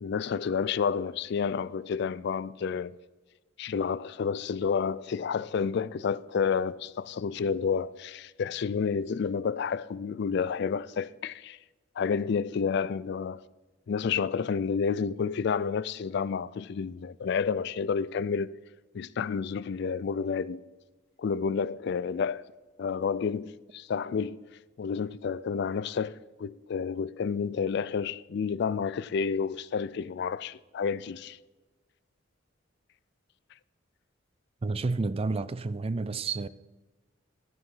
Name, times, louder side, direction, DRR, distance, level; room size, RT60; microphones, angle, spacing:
voice 1, 0.0-2.9 3.6-11.6 12.0-13.4 13.9-18.5 18.9-20.6 21.2-22.5 22.8-24.4 24.8-31.4, left 6 dB, 60° left, 0.3 m, -30 dB
voice 2, 34.6-36.5, right 3 dB, 30° right, 0.4 m, -30 dB
13.5 x 4.8 x 5.5 m
head